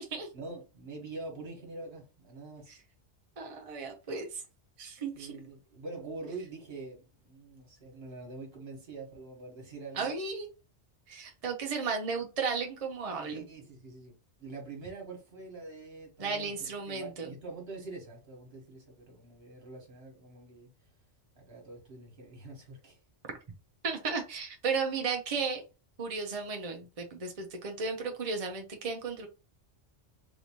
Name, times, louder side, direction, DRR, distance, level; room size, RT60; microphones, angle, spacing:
voice 1, 0.3-2.8 5.1-10.1 13.2-20.7 21.3-23.0, right 3 dB, 60° right, 1.5 m, -45 dB
voice 2, 3.4-4.4 4.8-5.3 9.9-10.5 11.1-13.4 16.2-17.3 23.8-25.6 26.0-29.3, right 5 dB, 40° right, 0.6 m, -34 dB
3.4 x 2.8 x 2.8 m
omnidirectional pair, 1.2 m